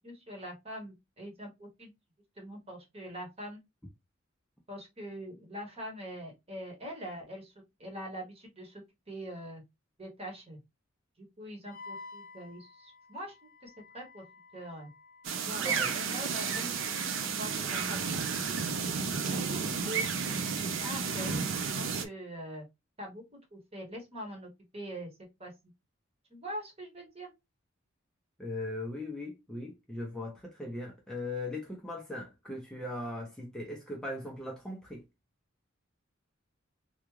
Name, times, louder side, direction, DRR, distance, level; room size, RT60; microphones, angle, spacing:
voice 1, 0.0-1.9 2.4-3.6 4.7-7.5 7.8-9.6 10.0-10.6 11.2-14.2 14.5-14.9 15.4-18.0 19.3-22.6 23.0-23.2 23.5-25.1 25.4-25.5 26.3-27.3, equal, 30° right, 1.2 m, -43 dB
Wind instrument woodwind instrument, 11.7-16.3, left 3 dB, 45° left, 0.7 m, -51 dB
sound 1, 15.2-22.0, right 6 dB, 70° right, 0.5 m, -32 dB
voice 2, 15.6-15.9 28.4-35.0, left 2 dB, 5° left, 0.6 m, -39 dB
3.5 x 2.4 x 3.1 m
head